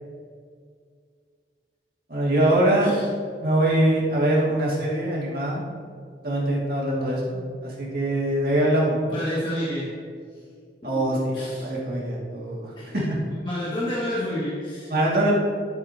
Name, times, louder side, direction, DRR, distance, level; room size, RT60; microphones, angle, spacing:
voice 1, 2.1-2.9 3.4-5.7 6.2-9.0 10.8-11.3 11.6-12.7 13.1-13.2 14.9-15.3, right 1 dB, 55° right, -5 dB, 2.3 m, -23 dB
voice 2, 9.1-9.9 10.8-10.9 11.3-11.7 12.8-12.9 13.4-14.9, left 1 dB, 30° left, -8 dB, 1.6 m, -29 dB
11.5 x 8.8 x 2.9 m, 2.1 s
head